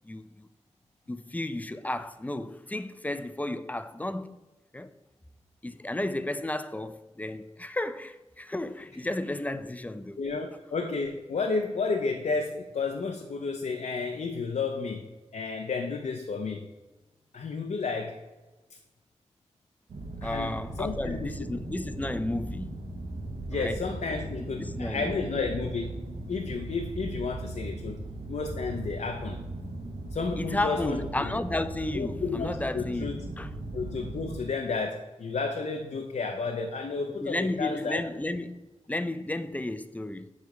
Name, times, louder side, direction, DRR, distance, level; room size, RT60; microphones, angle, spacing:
voice 1, 0.0-0.5 1.1-4.4 4.7-4.9 5.6-10.2 20.2-22.8 23.5-23.8 24.5-25.4 30.4-33.5 37.2-40.3, left 1 dB, 15° left, 0.4 m, -33 dB
voice 2, 10.2-15.0 15.3-16.7 17.3-18.2 20.2-21.5 23.5-28.0 28.3-29.4 30.1-31.3 31.9-33.2 33.7-38.0, left 4 dB, 85° left, 0.5 m, -32 dB
sound 1, 19.9-34.4, right 2 dB, 85° right, 0.8 m, -38 dB
8.2 x 3.2 x 4.8 m
wide cardioid pair, 80°, 12 cm